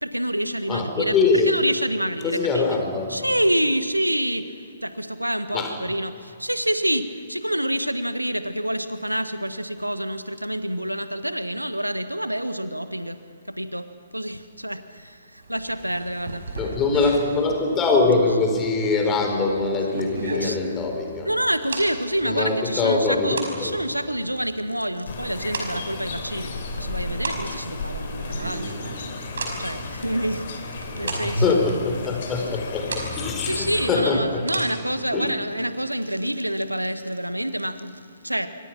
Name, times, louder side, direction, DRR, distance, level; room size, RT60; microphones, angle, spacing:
voice 1, 0.0-1.1 1.5-2.8 3.1-13.2 13.5-13.9 14.1-16.5 20.4-20.6 21.2-28.8 29.6-31.6 33.4-38.5, right 1 dB, 85° right, 10 dB, 1.4 m, -27 dB
voice 2, 0.7-1.5 2.2-3.2 5.5-5.7 16.6-21.3 22.2-23.7 30.9-34.4 35.1-35.3, left 3 dB, 15° left, 3 dB, 4.5 m, -23 dB
sound 1, 15.4-35.3, right 2 dB, 60° right, 5.3 m, -37 dB
sound 2, 25.0-33.9, left 3 dB, 45° left, 3.8 m, -33 dB
27.0 x 24.0 x 6.0 m, 2.4 s
figure-of-eight pair, 125°, 0 cm